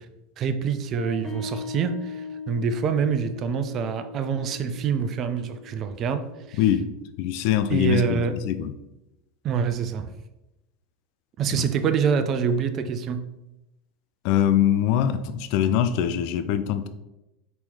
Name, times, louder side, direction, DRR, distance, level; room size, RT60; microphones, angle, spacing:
voice 1, 0.4-6.7 7.7-8.4 9.4-10.1 11.4-13.2, right 6 dB, 40° right, 0.4 m, -26 dB
sound 1, 0.9-7.8, left 3 dB, 20° left, 1.4 m, -40 dB
voice 2, 6.6-6.9 7.2-8.7 11.5-11.6 14.2-16.9, left 10 dB, 60° left, 0.3 m, -23 dB
4.2 x 3.0 x 3.5 m
hypercardioid pair, 85°, 0 cm